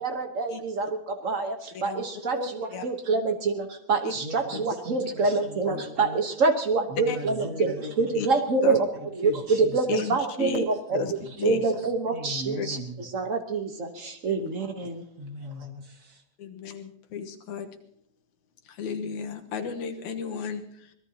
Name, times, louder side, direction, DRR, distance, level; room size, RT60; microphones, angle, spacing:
voice 1, 0.0-8.9 9.2-11.1 11.4-15.0, right 4 dB, 85° right, 5 dB, 0.7 m, -26 dB
voice 2, 1.7-2.0 2.3-2.9 4.0-4.1 4.5-5.1 5.7-5.8 7.1-7.2 8.2-8.3 8.6-8.8 9.9-10.7 10.9-11.1 11.4-11.6 12.6-12.7 14.3-14.5 16.4-17.7 18.7-20.9, left 6 dB, 80° left, 4 dB, 2.7 m, -34 dB
voice 3, 4.2-6.2 6.9-8.2 9.0-10.0 10.9-11.7 12.1-13.0 15.2-16.2, equal, 35° right, 3 dB, 2.2 m, -39 dB
24.5 x 19.5 x 2.9 m, 0.70 s
omnidirectional pair, 3.3 m